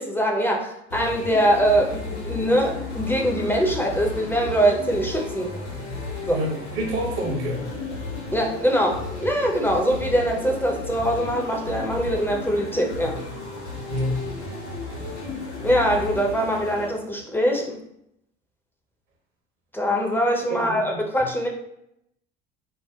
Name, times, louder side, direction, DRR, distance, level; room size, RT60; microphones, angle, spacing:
voice 1, 0.0-5.6 6.3-6.4 8.3-13.2 15.6-17.8 19.7-21.5, equal, 5° left, 0 dB, 0.6 m, -23 dB
sound 1, 0.9-16.9, left 3 dB, 85° left, 1.4 m, -34 dB
voice 2, 6.3-7.6 13.9-14.2 20.5-21.0, equal, 65° right, -1 dB, 1.1 m, -27 dB
5.2 x 2.1 x 2.3 m, 0.77 s
figure-of-eight pair, 60°, 33 cm